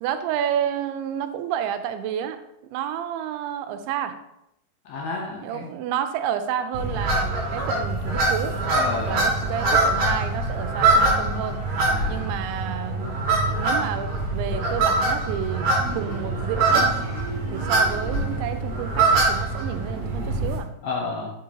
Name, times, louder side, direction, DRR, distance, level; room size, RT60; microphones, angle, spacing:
voice 1, 0.0-2.4 2.6-4.2 5.4-8.6 8.9-11.6 12.1-15.7 15.9-16.9 17.5-20.7, right 9 dB, 85° right, 9 dB, 2.9 m, -30 dB
voice 2, 4.9-5.7 8.7-9.5 11.9-12.3 20.8-21.3, left 3 dB, 75° left, -1 dB, 2.3 m, -31 dB
sound 1, 6.7-20.6, right 2 dB, 55° right, 4.1 m, -23 dB
7.5 x 7.5 x 2.8 m, 0.82 s
omnidirectional pair, 5.2 m